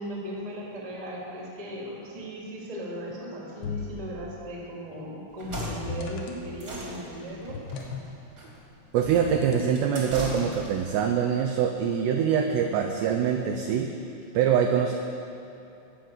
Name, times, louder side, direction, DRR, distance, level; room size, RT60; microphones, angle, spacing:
voice 1, 0.0-7.6, equal, 15° right, -4 dB, 1.1 m, -37 dB
sound 1, 3.6-4.1 5.5-6.5 7.4-8.1 9.1-9.9, left 3 dB, 70° left, 2.7 m, -37 dB
sound 2, 5.3-11.0, equal, 35° right, 1.5 m, -39 dB
voice 2, 8.9-13.9 14.3-14.9, right 8 dB, 85° right, 3 dB, 2.4 m, -24 dB
17.0 x 5.8 x 7.9 m, 2.8 s
omnidirectional pair, 5.7 m